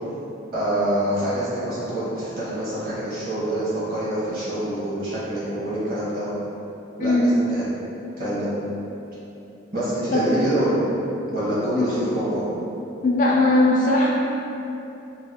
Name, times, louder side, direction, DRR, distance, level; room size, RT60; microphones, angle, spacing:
voice 1, 0.5-6.3 7.0-7.7 8.2-8.5 9.7-10.8 11.3-12.4, right 1 dB, 50° right, -10 dB, 1.0 m, -26 dB
voice 2, 7.0-7.3 10.1-10.3 11.7-11.9 13.0-14.1, left 2 dB, 40° left, -4 dB, 0.4 m, -19 dB
2.8 x 2.0 x 3.4 m, 2.9 s
head